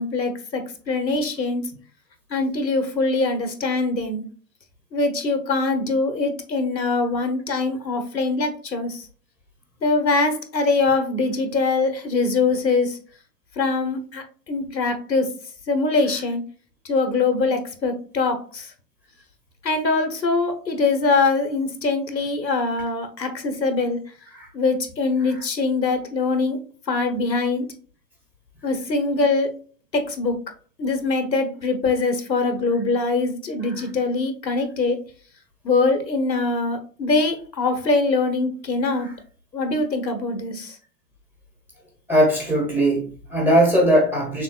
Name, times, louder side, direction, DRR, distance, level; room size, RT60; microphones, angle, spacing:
voice 1, 0.0-1.7 2.3-4.2 4.9-9.1 9.8-13.0 13.6-15.3 15.7-16.4 16.8-18.7 19.6-24.0 24.5-26.6 26.9-27.7 28.6-29.5 29.9-30.4 30.8-35.0 35.6-39.1 39.5-40.8, left 3 dB, 85° left, 7 dB, 1.2 m, -23 dB
voice 2, 42.1-44.4, right 1 dB, 5° right, 0 dB, 1.4 m, -20 dB
6.1 x 3.4 x 2.4 m, 0.41 s
figure-of-eight pair, 120°, 50 cm